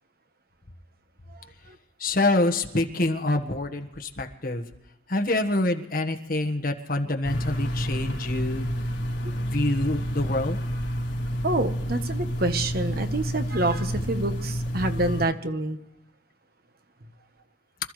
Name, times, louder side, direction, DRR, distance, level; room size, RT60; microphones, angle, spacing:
voice 1, 1.3-1.8 11.4-15.8, right 2 dB, 50° right, 8 dB, 1.2 m, -27 dB
voice 2, 2.0-4.6 5.1-8.7 9.4-10.6, left 2 dB, 50° left, 6 dB, 1.5 m, -26 dB
sound 1, 7.2-15.3, equal, 70° left, 4.0 m, -29 dB
26.0 x 13.5 x 3.3 m, 0.86 s
head